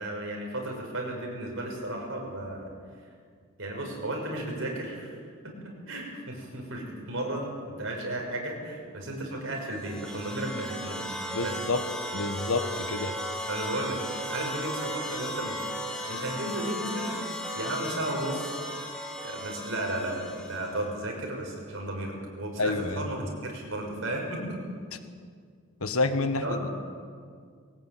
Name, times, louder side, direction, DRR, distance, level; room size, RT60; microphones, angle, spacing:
voice 1, 0.0-2.7 3.6-5.2 5.4-11.6 13.5-15.6 16.1-17.2 17.5-18.6 19.2-24.6 26.4-26.6, right 1 dB, 60° right, 1 dB, 6.0 m, -34 dB
sound 1, 9.6-20.9, equal, 5° left, 2.5 m, -36 dB
voice 2, 11.3-11.8 12.1-13.1 22.6-23.1 25.8-26.7, left 3 dB, 70° left, 8 dB, 1.6 m, -28 dB
20.5 x 17.5 x 9.3 m, 2.1 s
head